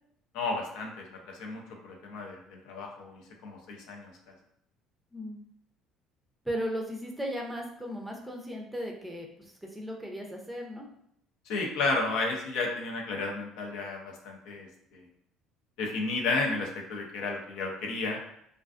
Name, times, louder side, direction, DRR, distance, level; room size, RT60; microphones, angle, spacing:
voice 1, 0.3-1.0 1.4-4.1 11.5-15.0 15.8-18.2, left 3 dB, 75° left, 1 dB, 0.6 m, -32 dB
voice 2, 6.5-10.9, equal, 5° right, 0 dB, 0.5 m, -36 dB
2.4 x 2.3 x 2.4 m, 0.73 s
supercardioid pair, 100°, 0 cm